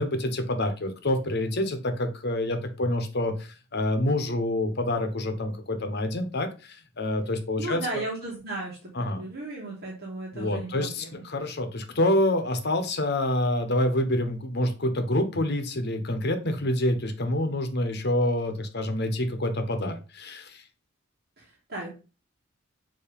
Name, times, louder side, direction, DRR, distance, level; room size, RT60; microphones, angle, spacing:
voice 1, 0.0-7.8 8.9-9.2 10.3-20.6, left 1 dB, 55° left, 7 dB, 1.2 m, -27 dB
voice 2, 7.6-11.2 21.4-21.9, right 2 dB, 50° right, -4 dB, 2.0 m, -35 dB
7.2 x 3.1 x 5.3 m, 0.33 s
head